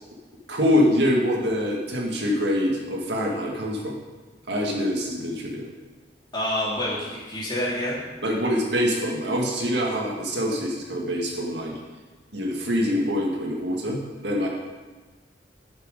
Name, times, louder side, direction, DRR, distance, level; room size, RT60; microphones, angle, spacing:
voice 1, 0.5-3.9 4.5-5.6 8.2-11.7 12.3-14.5, equal, 80° right, -1 dB, 2.0 m, -25 dB
voice 2, 6.3-8.0, left 1 dB, 25° left, -6 dB, 2.7 m, -27 dB
11.5 x 6.6 x 5.2 m, 1.3 s
head